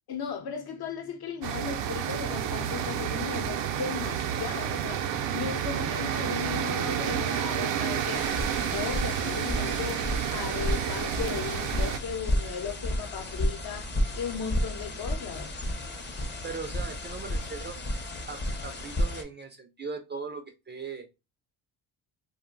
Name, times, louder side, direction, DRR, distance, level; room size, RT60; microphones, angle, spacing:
voice 1, 0.1-5.1 5.3-8.4 8.7-15.6, left 6 dB, 55° left, 0.8 m, -36 dB
sound 1, 1.4-12.0, right 9 dB, 75° right, 0.6 m, -30 dB
sound 2, 8.1-19.2, equal, 25° left, 0.7 m, -32 dB
voice 2, 16.4-17.8 18.3-21.1, right 4 dB, 25° right, 0.4 m, -39 dB
2.5 x 2.2 x 3.8 m
cardioid pair, 95°, 45 cm